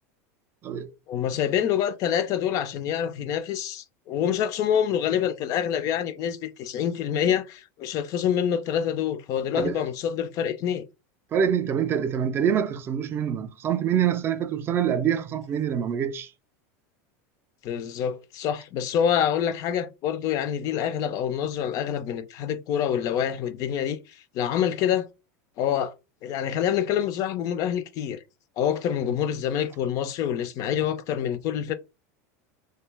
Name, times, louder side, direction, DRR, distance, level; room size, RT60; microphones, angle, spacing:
voice 1, 1.1-10.8 17.6-24.0 24.3-25.1 25.6-25.9 26.2-28.2 28.6-31.7, left 9 dB, 45° left, 0.3 m, -26 dB
voice 2, 11.3-16.3, right 8 dB, 25° right, 0.4 m, -25 dB
2.6 x 2.2 x 3.2 m
supercardioid pair, 140°, 8 cm